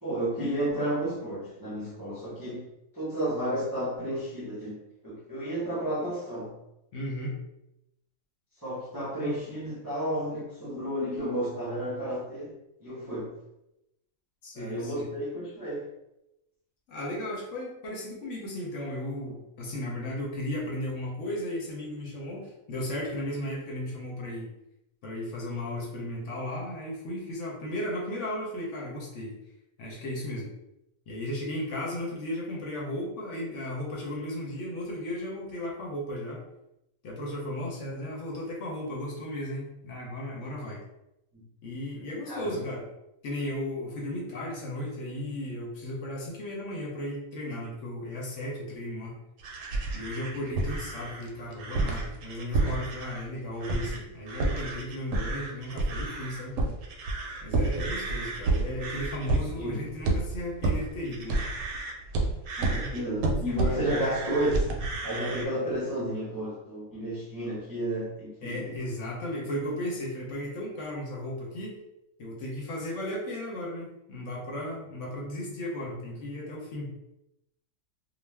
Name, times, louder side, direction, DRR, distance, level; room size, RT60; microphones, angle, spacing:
voice 1, 0.0-2.6 2.9-4.8 5.0-6.6 8.6-12.5 12.8-13.3 14.5-15.8 41.3-41.4 42.3-42.6 59.6-59.8 62.6-64.7 65.0-68.7, right 1 dB, 20° right, -8 dB, 0.6 m, -32 dB
voice 2, 6.9-7.4 14.4-15.1 16.9-24.5 25.0-29.3 29.8-30.5 31.1-36.4 37.0-40.8 41.6-42.9 43.2-49.2 49.9-56.6 57.4-61.4 62.7-62.9 63.5-63.8 64.0-64.2 68.4-71.8 72.2-76.9, left 1 dB, 65° left, -2 dB, 1.0 m, -35 dB
sound 1, 49.4-53.3 53.6-54.0 54.3-65.5, right 2 dB, 70° right, 0.9 m, -30 dB
2.4 x 2.3 x 3.3 m, 0.87 s
omnidirectional pair, 1.4 m